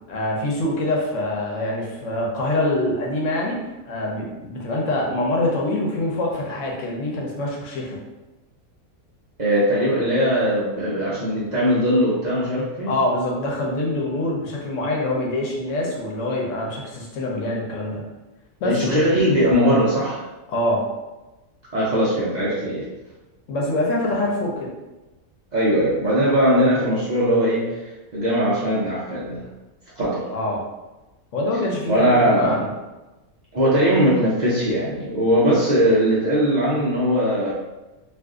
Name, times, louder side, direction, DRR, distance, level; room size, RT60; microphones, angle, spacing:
voice 1, 0.1-8.0 12.9-18.0 18.6-19.0 20.5-20.9 23.5-24.7 30.3-30.6 31.3-32.7, left 1 dB, 65° left, -2 dB, 1.0 m, -25 dB
voice 2, 9.4-12.9 18.6-20.2 21.7-22.9 25.5-27.8 28.1-29.5 30.0-30.3 31.9-32.6 33.5-37.5, equal, 70° right, -8 dB, 0.4 m, -20 dB
2.5 x 2.5 x 3.6 m, 1.1 s
omnidirectional pair, 1.5 m